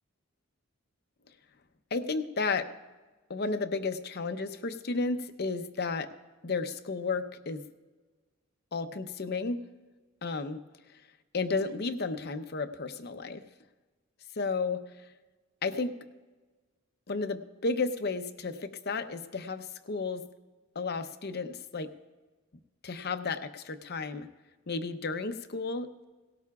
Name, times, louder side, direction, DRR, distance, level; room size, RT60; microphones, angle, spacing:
voice 1, 1.9-2.7 3.3-6.1 6.4-7.6 8.7-9.6 10.2-10.6 11.3-13.4 14.4-14.8 15.6-15.9 17.1-20.2 20.7-21.9 22.8-24.3 24.7-26.0, left 4 dB, 50° left, 8 dB, 0.7 m, -33 dB
18.0 x 17.5 x 2.4 m, 1.3 s
head